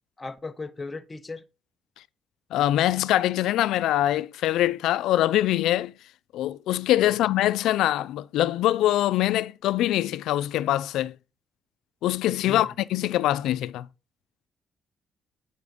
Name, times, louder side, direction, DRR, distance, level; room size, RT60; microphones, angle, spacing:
voice 1, 0.2-1.4 7.0-7.2 12.4-12.7, left 3 dB, 25° left, 0.9 m, -37 dB
voice 2, 2.5-5.9 6.3-11.1 12.0-13.9, left 13 dB, 85° left, 0.4 m, -23 dB
8.1 x 5.9 x 5.2 m
cardioid pair, 90°, 0 cm